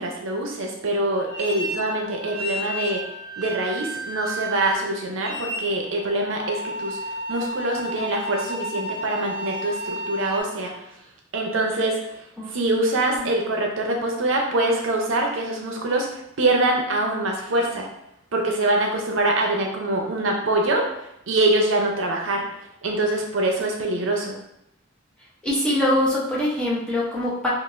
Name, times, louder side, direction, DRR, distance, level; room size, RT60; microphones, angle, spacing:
voice 1, 0.0-3.0 3.4-7.0 7.3-10.7 11.3-12.0 12.5-17.9 18.3-22.5 22.8-24.4, right 2 dB, 70° right, 1 dB, 0.6 m, -24 dB
sound 1, 1.2-10.4, right 1 dB, 35° right, 0.7 m, -32 dB
voice 2, 25.4-27.5, left 1 dB, 5° left, -6 dB, 0.7 m, -23 dB
3.7 x 2.4 x 2.5 m, 0.79 s
head